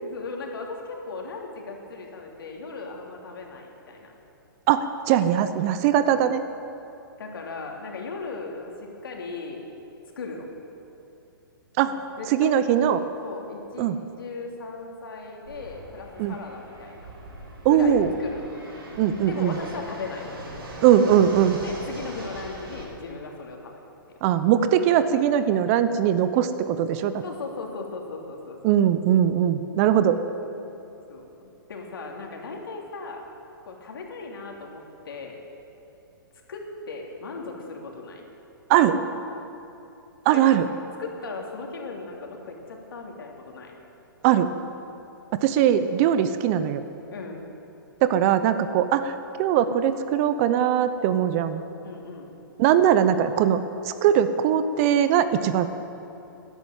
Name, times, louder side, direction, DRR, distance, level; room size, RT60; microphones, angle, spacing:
voice 1, 0.0-4.1 7.2-9.7 10.2-10.5 11.8-17.1 17.7-18.5 19.3-20.3 21.6-23.8 27.2-28.7 31.1-33.2 33.7-35.4 36.5-38.2 40.3-40.6 41.0-43.8 47.1-47.5 51.8-52.3, left 4 dB, 75° left, 1 dB, 3.1 m, -37 dB
voice 2, 4.7-6.4 11.8-11.9 12.4-13.0 13.8-14.0 16.2-16.3 17.6-18.1 19.0-19.6 20.8-21.6 24.2-27.2 28.6-30.2 38.7-39.0 40.2-40.7 44.2-44.5 45.3-46.8 48.0-51.6 52.6-55.7, right 10 dB, 40° right, 11 dB, 0.9 m, -21 dB
Fixed-wing aircraft airplane, 15.4-22.8, right 1 dB, 80° right, 4.2 m, -41 dB
13.5 x 11.0 x 9.1 m, 2.9 s
hypercardioid pair, 130°, 12 cm